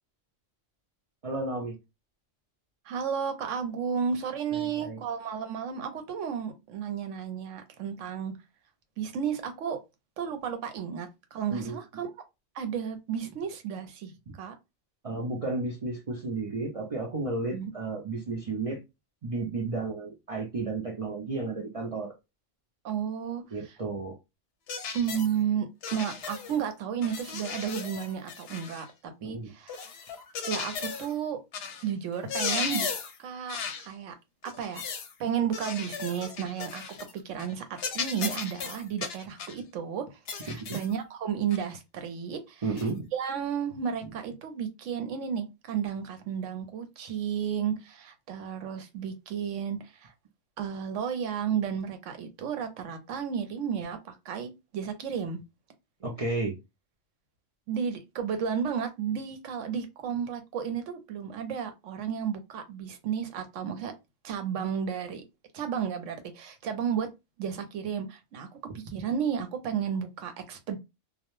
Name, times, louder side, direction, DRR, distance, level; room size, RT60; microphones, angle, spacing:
voice 1, 1.2-1.8 4.5-5.0 11.5-11.8 15.0-18.8 19.2-22.1 23.5-24.2 29.2-29.5 40.5-40.8 42.6-43.1 56.0-56.6, right 3 dB, 60° right, 0.3 m, -33 dB
voice 2, 2.8-8.3 9.0-9.8 10.2-12.1 12.5-14.5 17.5-17.7 22.8-23.8 24.9-28.9 29.2-29.9 30.5-31.4 31.8-32.9 33.2-34.1 34.4-34.8 35.2-36.8 37.1-50.1 50.6-55.4 57.7-63.9 64.2-65.2 65.5-67.1 67.4-68.5 68.7-70.8, right 7 dB, 80° right, 0.9 m, -33 dB
sound 1, 24.7-25.3 25.8-26.6 27.0-28.9 29.7-31.1 31.5-31.8 32.1-33.2 33.5-33.9 34.5-35.1 35.5-37.1 37.4-37.5 37.8-39.6 40.3-40.9 41.5-41.6 42.8-42.9, left 6 dB, 60° left, 0.8 m, -36 dB
2.3 x 2.0 x 3.0 m
omnidirectional pair, 1.3 m